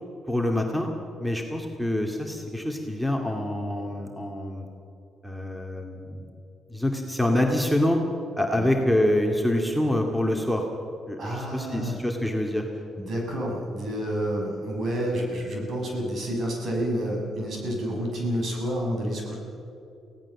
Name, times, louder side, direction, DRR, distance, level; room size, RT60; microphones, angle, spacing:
voice 1, 0.3-0.9 1.2-4.7 5.2-6.3 6.7-8.0 8.4-10.7 11.1-12.6, left 1 dB, ahead, 2 dB, 2.3 m, -26 dB
voice 2, 11.2-12.0 13.0-19.4, equal, 55° right, 0 dB, 6.9 m, -29 dB
24.0 x 17.0 x 7.3 m, 2.8 s
cardioid pair, 90°, 0 cm